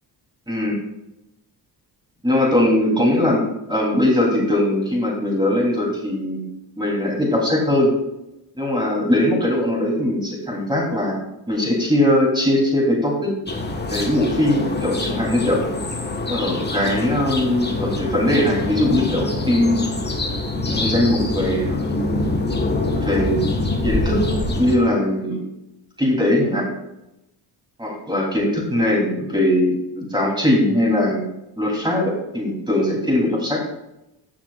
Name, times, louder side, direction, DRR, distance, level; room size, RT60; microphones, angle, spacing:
voice 1, 0.5-0.8 2.2-6.4 6.8-7.9 8.6-11.2 11.5-13.3 13.9-15.6 16.3-19.9 20.6-21.8 22.9-23.4 23.8-24.3 24.6-25.4 26.0-26.7 27.8-31.2 31.6-33.6, left 1 dB, 10° right, -2 dB, 3.4 m, -20 dB
sound 1, 13.5-24.7, left 2 dB, 20° left, 1.4 m, -25 dB
15.0 x 6.0 x 2.5 m, 0.90 s
cardioid pair, 85°, 46 cm